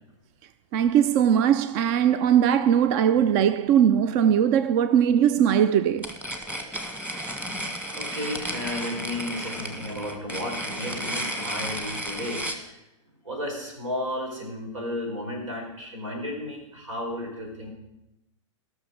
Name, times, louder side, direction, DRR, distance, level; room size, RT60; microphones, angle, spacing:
voice 1, 0.7-6.1, right 9 dB, 40° right, 0.5 m, -20 dB
sound 1, 6.0-12.6, equal, 10° right, 1.5 m, -33 dB
voice 2, 7.9-12.4 12.7-12.8 13.2-17.7, left 1 dB, 85° right, 5.1 m, -33 dB
16.5 x 6.3 x 6.6 m
hypercardioid pair, 125°, 16 cm